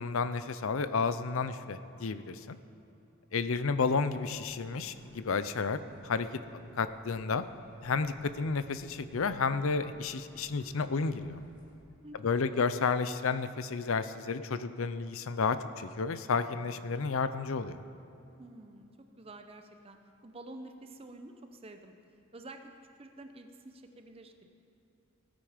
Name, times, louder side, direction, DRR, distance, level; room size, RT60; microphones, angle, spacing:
voice 1, 0.0-2.6 3.3-6.3 6.8-7.4 7.8-11.4 12.2-17.8, left 4 dB, 65° left, 12 dB, 0.6 m, -31 dB
voice 2, 3.3-3.7 12.0-12.2 12.5-12.6 18.4-18.9 19.1-21.9 22.3-22.7 23.0-24.5, right 2 dB, 25° right, 6 dB, 0.7 m, -49 dB
sound 1, 3.4-11.7, equal, 35° left, 2.7 m, -58 dB
18.5 x 9.0 x 5.0 m, 2.8 s
head